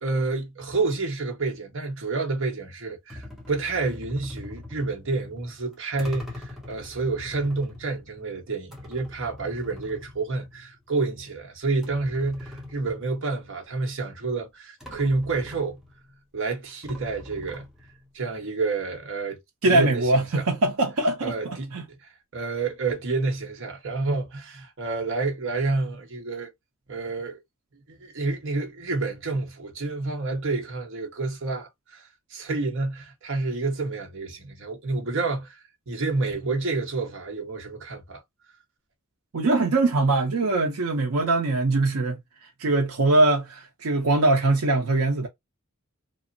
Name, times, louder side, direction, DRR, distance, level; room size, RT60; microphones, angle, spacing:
voice 1, 0.0-15.8 16.3-17.6 18.1-20.5 21.2-26.5 26.9-27.4 27.9-38.2, right 3 dB, 60° right, 1.0 m, -29 dB
sound 1, 3.1-10.9 11.2-11.3 11.8-13.5 14.4-14.5 14.8-16.2 16.8-18.1, left 1 dB, ahead, 0.8 m, -43 dB
voice 2, 19.6-21.8 39.3-42.2 42.6-45.3, right 2 dB, 85° right, 0.7 m, -22 dB
3.0 x 2.0 x 2.5 m
head